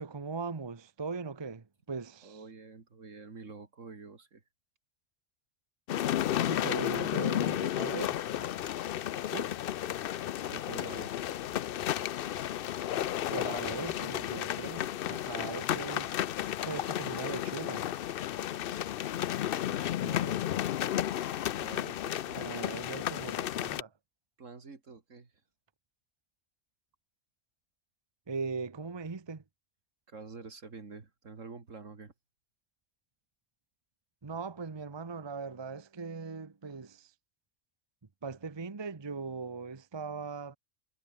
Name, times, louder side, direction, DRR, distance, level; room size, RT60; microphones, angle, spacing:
voice 1, 0.0-2.4 6.4-8.5 9.3-9.6 13.3-16.2 16.6-17.9 22.4-23.9 28.3-29.4 34.2-37.1 38.2-40.6, right 4 dB, 25° right, 0.9 m, -39 dB
voice 2, 2.2-4.4 6.8-7.2 10.5-11.1 15.5-15.6 19.3-20.4 21.6-22.8 24.4-25.3 30.1-32.1, right 4 dB, 75° right, 2.8 m, -47 dB
sound 1, 5.9-23.8, left 12 dB, 60° left, 0.6 m, -33 dB
omnidirectional pair, 1.3 m